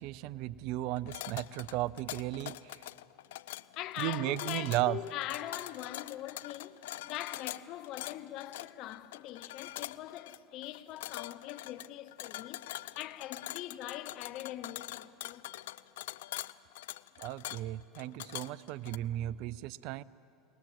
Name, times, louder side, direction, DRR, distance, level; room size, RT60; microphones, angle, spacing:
voice 1, 0.0-2.6 4.0-5.0 17.2-20.0, right 15 dB, 65° right, 0.5 m, -35 dB
sound 1, 1.0-19.0, left 16 dB, 75° left, 0.4 m, -44 dB
voice 2, 3.8-12.6 12.9-15.5, left 14 dB, 55° left, 1.0 m, -42 dB
27.0 x 19.5 x 7.7 m
hypercardioid pair, 85°, 0 cm